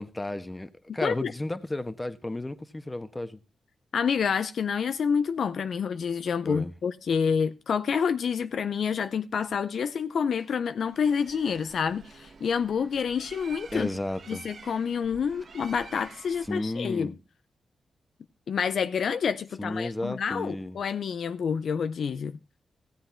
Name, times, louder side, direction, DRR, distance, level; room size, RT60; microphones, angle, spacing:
voice 1, 0.0-3.4 6.4-6.7 13.7-14.4 16.5-17.1 19.6-20.8, left 1 dB, 20° left, 1.2 m, -33 dB
voice 2, 1.0-1.3 3.9-13.9 14.3-17.1 18.5-22.4, left 6 dB, 70° left, 0.5 m, -28 dB
Bird, 10.8-16.9, right 5 dB, 60° right, 1.5 m, -49 dB
16.0 x 7.7 x 4.4 m
cardioid pair, 55°, 0 cm